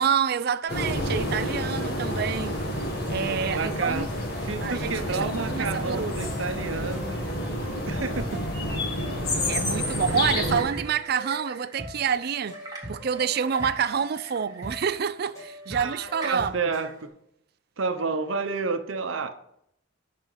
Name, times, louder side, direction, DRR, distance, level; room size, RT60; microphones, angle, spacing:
voice 1, 0.0-2.6 3.1-4.1 4.6-6.2 9.4-12.6 12.9-16.5, right 7 dB, 50° right, 0.4 m, -27 dB
sound 1, 0.7-10.6, left 1 dB, 55° left, 1.9 m, -29 dB
voice 2, 3.3-4.1 4.4-8.4 15.7-17.1 17.8-19.4, right 4 dB, 85° right, 0.8 m, -31 dB
sound 2, 6.2-16.9, right 1 dB, 15° left, 3.1 m, -42 dB
sound 3, 9.9-17.0, right 3 dB, 20° right, 1.6 m, -43 dB
11.0 x 4.4 x 5.6 m
head